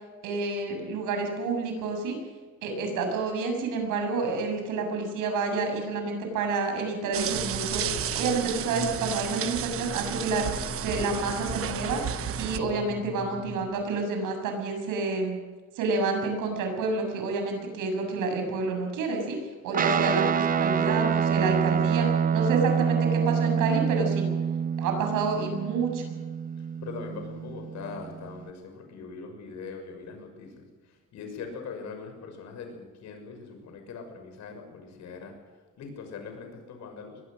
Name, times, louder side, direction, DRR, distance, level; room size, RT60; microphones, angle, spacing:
voice 1, 0.2-2.2 2.6-7.8 8.1-12.0 12.4-15.4 15.7-22.1 22.3-24.3 24.8-26.1, right 4 dB, 80° right, 3 dB, 7.4 m, -29 dB
sound 1, 7.1-12.6, right 10 dB, 45° right, 1.1 m, -32 dB
sound 2, 7.3-13.7, left 5 dB, 15° left, 7.2 m, -40 dB
Guitar, 19.7-28.5, right 7 dB, 25° right, 0.7 m, -27 dB
voice 2, 26.6-35.3 35.8-37.2, left 5 dB, 60° left, 5 dB, 6.3 m, -41 dB
23.5 x 20.0 x 6.6 m, 1.4 s
cardioid pair, 150°, 31 cm